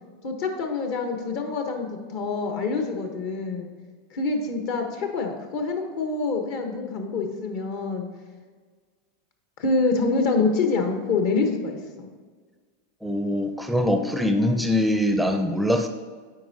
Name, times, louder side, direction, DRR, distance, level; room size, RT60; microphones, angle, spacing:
voice 1, 0.2-3.7 4.1-8.1 9.6-12.1, left 3 dB, 60° left, 4 dB, 1.0 m, -26 dB
voice 2, 13.0-15.9, left 1 dB, ahead, 6 dB, 0.5 m, -23 dB
9.1 x 4.6 x 2.7 m, 1.5 s
hypercardioid pair, 95°, 0 cm